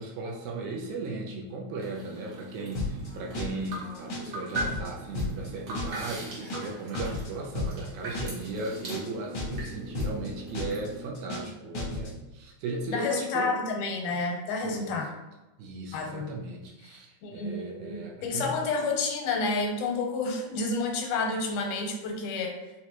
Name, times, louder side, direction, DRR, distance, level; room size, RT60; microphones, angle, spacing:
voice 1, 0.0-13.5 14.6-15.0 15.6-18.5, right 2 dB, 80° right, -1 dB, 1.8 m, -37 dB
sound 1, 1.8-11.1, right 2 dB, 60° right, 1.2 m, -40 dB
sound 2, 2.7-3.1 3.3-3.7 3.9-4.3 4.5-4.9 5.1-5.5 5.7-6.1 6.3-6.7 6.9-7.3 7.5-7.9 8.1-8.5 8.7-9.1 9.3-9.7 9.9-10.3 10.5-10.9 11.1-11.5 11.7-12.1, left 2 dB, 70° left, 1.0 m, -33 dB
voice 2, 12.9-15.1 15.9-16.3 16.9-22.6, left 3 dB, 85° left, 2 dB, 2.1 m, -30 dB
6.5 x 2.2 x 2.9 m, 1.0 s
omnidirectional pair, 3.4 m